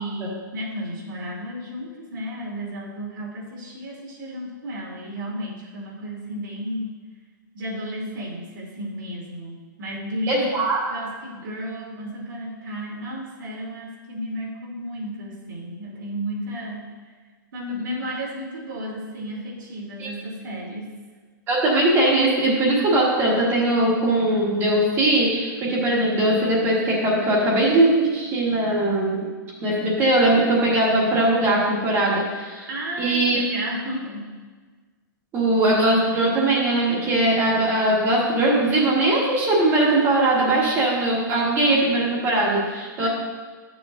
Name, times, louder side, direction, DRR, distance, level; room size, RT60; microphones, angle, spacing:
voice 1, 0.0-6.9 7.5-10.6 10.9-16.8 17.5-20.9 32.7-34.3 43.0-43.1, equal, 75° right, -3 dB, 2.6 m, -33 dB
voice 2, 10.3-10.8 20.0-20.1 21.5-29.3 29.6-32.7 33.0-33.4 35.3-43.1, right 1 dB, 20° right, -3 dB, 1.5 m, -20 dB
11.5 x 6.8 x 2.6 m, 1.4 s
hypercardioid pair, 165°, 11 cm